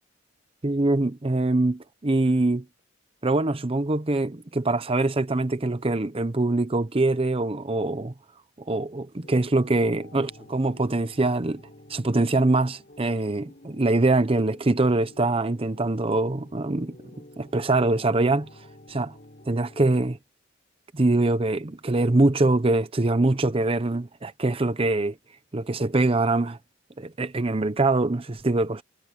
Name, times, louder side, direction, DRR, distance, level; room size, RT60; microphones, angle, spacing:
voice 1, 0.6-2.6 3.2-8.1 8.7-11.6 11.9-17.0 17.4-18.5 18.9-19.1 19.5-20.2 20.9-25.2 25.5-26.6 27.0-28.8, right 2 dB, 30° right, 0.7 m, -23 dB
sound 1, 9.2-19.9, left 1 dB, 45° left, 5.8 m, -50 dB
head